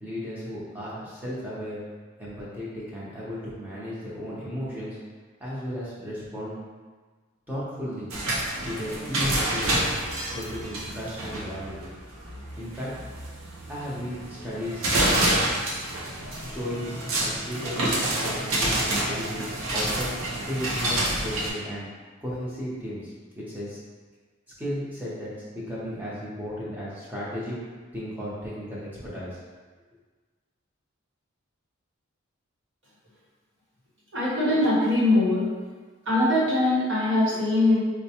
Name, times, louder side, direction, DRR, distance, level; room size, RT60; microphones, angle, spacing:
voice 1, 0.0-1.8 2.2-5.0 5.4-6.6 7.5-8.1 8.6-9.8 10.3-11.9 12.6-12.9 13.7-14.9 16.4-20.1 20.4-21.9 22.2-23.8 24.6-27.5 27.9-29.4, equal, 10° right, -8 dB, 0.8 m, -34 dB
sound 1, 8.1-21.5, right 1 dB, 85° right, 0.7 m, -28 dB
voice 2, 34.1-35.5 36.1-37.8, left 1 dB, 60° right, -7 dB, 1.1 m, -22 dB
4.3 x 2.2 x 2.9 m, 1.4 s
head